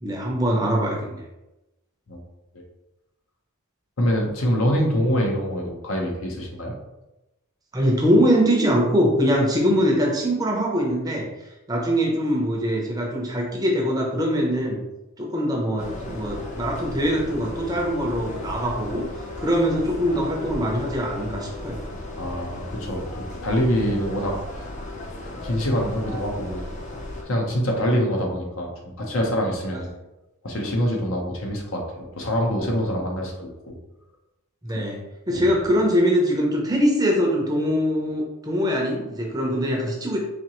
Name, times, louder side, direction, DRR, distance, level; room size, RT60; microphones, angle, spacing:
voice 1, 0.0-1.2 7.7-14.8 15.2-19.0 19.4-21.8 34.6-35.0 35.3-40.2, equal, 15° right, -1 dB, 0.6 m, -22 dB
voice 2, 4.0-6.7 22.2-24.4 25.4-26.6 27.2-29.9 30.4-33.8 34.7-34.8 35.3-35.5, equal, 65° left, 0 dB, 0.8 m, -25 dB
sound 1, 15.8-27.2, left 1 dB, 35° left, 0.6 m, -35 dB
4.2 x 2.8 x 3.0 m, 0.97 s
head